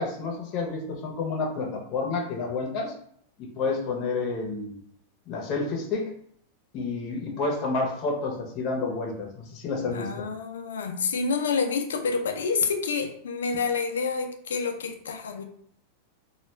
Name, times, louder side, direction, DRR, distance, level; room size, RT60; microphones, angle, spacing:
voice 1, 0.0-2.9 3.4-4.8 5.3-6.1 6.7-10.2, left 3 dB, 45° left, 1 dB, 0.7 m, -30 dB
voice 2, 9.9-15.4, left 5 dB, 90° left, 5 dB, 0.4 m, -28 dB
2.3 x 2.2 x 3.1 m, 0.66 s
hypercardioid pair, 115°, 0 cm